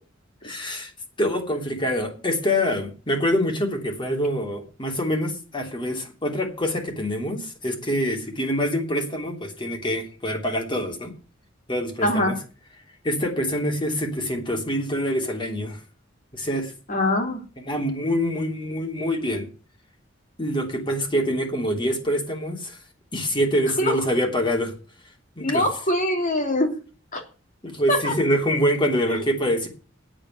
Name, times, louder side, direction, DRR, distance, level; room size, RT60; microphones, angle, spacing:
voice 1, 0.4-0.9 1.2-11.1 11.7-12.4 13.0-15.8 16.3-16.7 17.6-19.5 20.4-22.8 23.1-24.7 25.4-25.6 27.6-29.7, equal, 25° left, 2 dB, 3.1 m, -25 dB
voice 2, 12.0-12.3 16.9-17.4 23.8-23.9 25.4-26.8 27.1-27.2 27.9-28.1 29.1-29.2, left 1 dB, 45° left, 4 dB, 3.1 m, -23 dB
9.0 x 7.7 x 9.2 m, 0.36 s
head